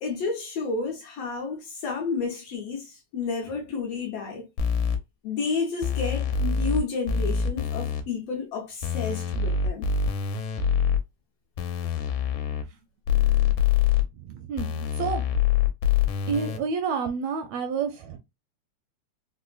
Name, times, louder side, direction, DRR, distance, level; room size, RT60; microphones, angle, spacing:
voice 1, 0.0-4.5 5.2-9.9, left 4 dB, 75° left, 1.6 m, -31 dB
sound 1, 4.6-5.0 5.8-6.8 7.1-8.0 8.8-11.0 11.6-12.6 13.1-14.0 14.6-16.6, left 7 dB, 90° left, 2.0 m, -25 dB
voice 2, 14.3-15.2 16.3-18.2, right 5 dB, 80° right, 1.6 m, -29 dB
5.0 x 2.1 x 2.3 m
omnidirectional pair, 3.3 m